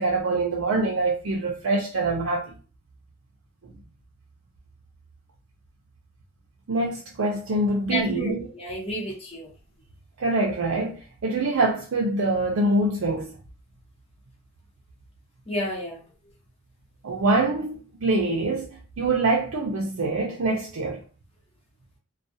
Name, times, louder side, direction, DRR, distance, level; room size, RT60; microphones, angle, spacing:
voice 1, 0.0-2.6 6.7-8.5 10.2-13.4 17.0-21.0, right 2 dB, 75° right, 0.5 m, -25 dB
voice 2, 7.9-9.5 15.5-16.0, left 1 dB, 30° left, 0.9 m, -31 dB
2.3 x 2.2 x 2.7 m
head